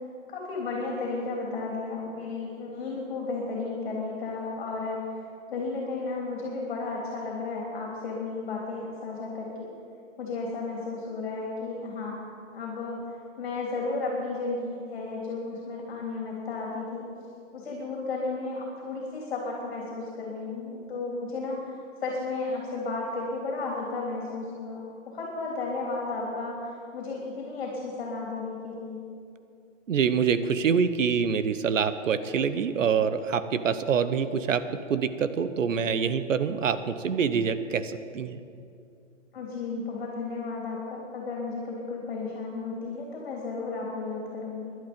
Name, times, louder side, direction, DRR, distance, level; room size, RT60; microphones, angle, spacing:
voice 1, 0.3-5.2 5.5-9.7 10.2-12.2 12.5-17.1 17.5-21.7 22.0-24.8 25.1-26.6 26.9-29.0 39.3-44.8, left 3 dB, 45° left, -2 dB, 3.4 m, -33 dB
voice 2, 29.9-38.4, right 6 dB, 80° right, 12 dB, 1.1 m, -26 dB
20.0 x 11.5 x 5.3 m, 2.5 s
hypercardioid pair, 175°, 38 cm